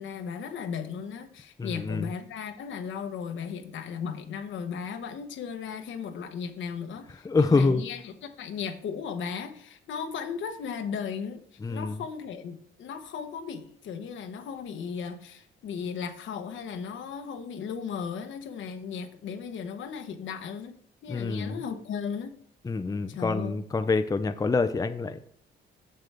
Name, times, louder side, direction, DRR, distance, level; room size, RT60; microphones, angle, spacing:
voice 1, 0.0-11.4 11.7-20.8 21.0-22.4 23.1-23.5, left 6 dB, 75° left, 7 dB, 1.1 m, -36 dB
voice 2, 1.6-2.1 7.2-7.8 11.6-12.0 21.1-21.6 22.6-25.2, left 3 dB, 20° left, 9 dB, 0.5 m, -26 dB
7.6 x 6.9 x 3.4 m, 0.66 s
cardioid pair, 90°, 20 cm